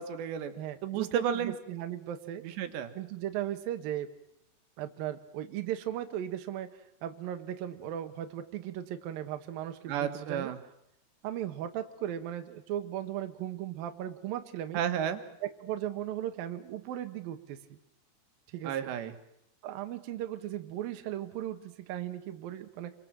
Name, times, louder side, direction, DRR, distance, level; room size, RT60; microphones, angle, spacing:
voice 1, 0.0-0.5 0.8-1.6 2.4-2.9 9.9-10.6 14.7-15.2 18.6-19.1, right 9 dB, 85° right, 8 dB, 3.8 m, -32 dB
voice 2, 0.6-2.4 2.9-4.1 4.8-10.5 11.2-14.8 15.4-17.8 18.5-18.9 19.6-22.9, right 11 dB, 65° right, 7 dB, 2.9 m, -37 dB
28.5 x 24.5 x 7.5 m, 0.80 s
omnidirectional pair, 4.9 m